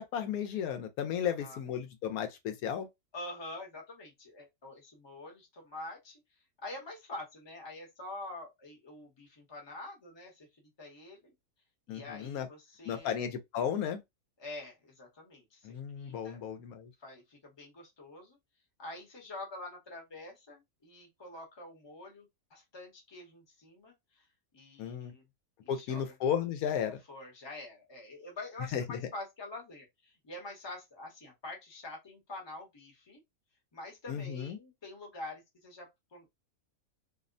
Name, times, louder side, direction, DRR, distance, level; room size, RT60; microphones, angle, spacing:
voice 1, 0.0-2.9 11.9-12.5 12.9-14.0 15.6-16.9 24.8-25.1 25.7-27.0 28.7-29.0 34.1-34.6, left 8 dB, 85° left, 1.1 m, -34 dB
voice 2, 1.2-1.6 3.1-6.2 6.6-11.3 11.9-13.2 14.4-16.4 17.0-18.4 18.8-24.2 24.5-25.2 25.6-26.1 27.1-33.2 33.7-36.3, left 2 dB, 20° left, 0.8 m, -46 dB
2.7 x 2.1 x 2.5 m
omnidirectional pair, 1.5 m